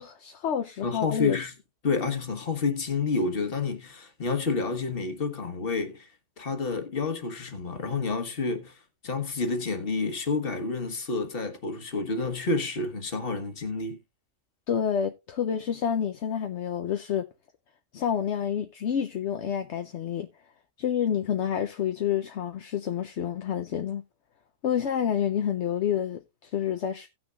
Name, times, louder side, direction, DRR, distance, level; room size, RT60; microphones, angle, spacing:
voice 1, 0.0-1.4 14.7-17.3 17.9-20.3 20.8-24.0 24.6-27.1, left 8 dB, 70° left, 1.0 m, -28 dB
voice 2, 0.8-1.5 1.8-6.1 6.4-14.0, left 4 dB, 50° left, 1.6 m, -29 dB
17.5 x 6.2 x 2.4 m
omnidirectional pair, 1.3 m